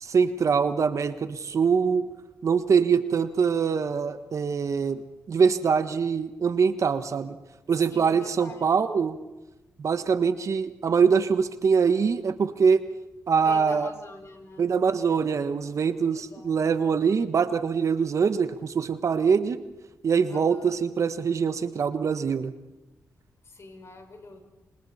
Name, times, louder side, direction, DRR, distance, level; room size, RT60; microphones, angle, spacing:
voice 1, 0.0-2.1 2.4-7.4 7.7-9.2 9.8-12.8 13.3-13.9 14.6-19.6 20.0-22.5, right 6 dB, 60° right, 10 dB, 1.3 m, -23 dB
voice 2, 7.9-8.7 13.4-14.7 16.2-16.5 20.3-20.7 23.5-24.4, left 3 dB, 50° left, 4 dB, 5.8 m, -43 dB
29.0 x 26.0 x 4.3 m, 1.1 s
cardioid pair, 70°, 6 cm